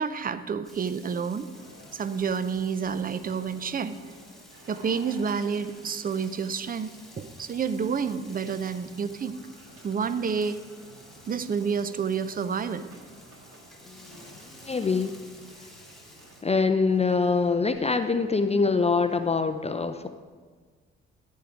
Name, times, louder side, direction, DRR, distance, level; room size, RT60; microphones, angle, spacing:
voice 1, 0.0-1.5 1.9-4.0 4.7-6.9 7.2-9.3 9.8-10.6 11.3-12.9, right 6 dB, 30° right, 13 dB, 0.6 m, -29 dB
Frying (food), 0.6-16.4, left 1 dB, ahead, 1.8 m, -53 dB
sound 1, 1.5-19.3, right 1 dB, 50° right, 1.8 m, -53 dB
voice 2, 13.8-15.1 16.4-20.1, left 4 dB, 20° left, 9 dB, 0.5 m, -25 dB
14.0 x 4.7 x 5.1 m, 1.5 s
hypercardioid pair, 50°, 30 cm